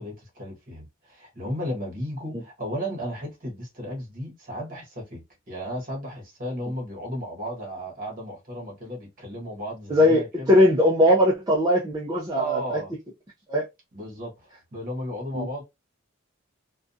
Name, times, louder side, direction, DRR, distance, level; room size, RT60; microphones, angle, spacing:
voice 1, 0.0-10.6 12.4-12.9 13.9-15.6, equal, 45° right, 1.0 m, -34 dB
voice 2, 9.9-12.8 13.5-13.7 15.3-15.5, left 1 dB, 20° right, 0.5 m, -20 dB
2.4 x 2.2 x 2.5 m
head